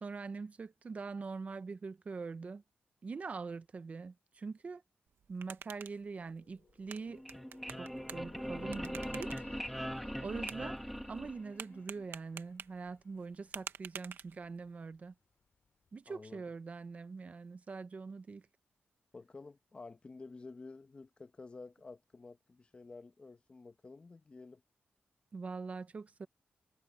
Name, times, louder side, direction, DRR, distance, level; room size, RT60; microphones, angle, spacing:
voice 1, 0.0-2.6 3.0-4.8 5.3-7.2 7.8-9.3 10.2-10.8 11.1-15.1 15.9-18.4 25.3-26.3, right 4 dB, 40° right, 0.8 m, -43 dB
sound 1, 5.1-14.7, right 7 dB, 85° right, 1.4 m, -51 dB
sound 2, 6.3-13.7 14.0-14.3 14.8-15.5 15.9-16.0, left 6 dB, 60° left, 6.7 m, -59 dB
sound 3, 7.1-11.8, equal, ahead, 2.0 m, -41 dB
voice 2, 16.1-16.4 19.1-24.6, left 3 dB, 30° left, 1.3 m, -51 dB
wide cardioid pair, 130°, 4 cm